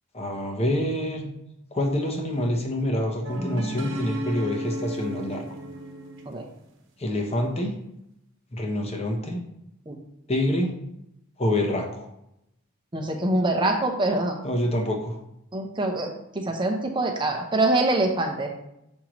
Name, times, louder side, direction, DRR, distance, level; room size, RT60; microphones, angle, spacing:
voice 1, 0.1-1.3 1.7-5.6 7.0-7.7 8.5-9.4 10.3-10.7 11.4-12.1 14.4-15.2, left 1 dB, 30° left, 2 dB, 1.0 m, -26 dB
sound 1, 3.2-6.4, equal, 65° right, 1.1 m, -33 dB
voice 2, 12.9-14.4 15.5-18.6, right 2 dB, 25° right, 2 dB, 0.8 m, -24 dB
6.3 x 5.5 x 3.1 m, 0.81 s
head